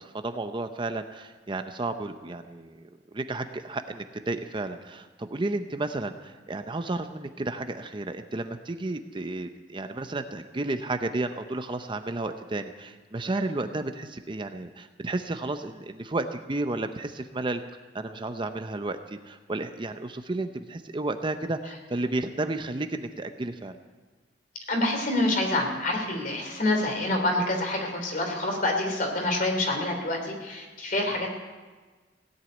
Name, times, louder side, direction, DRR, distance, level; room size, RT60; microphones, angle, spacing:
voice 1, 0.0-17.6 17.9-23.8, right 2 dB, 25° right, 8 dB, 0.6 m, -32 dB
voice 2, 24.7-31.3, left 1 dB, 50° left, 3 dB, 3.2 m, -27 dB
17.0 x 8.1 x 9.2 m, 1.4 s
head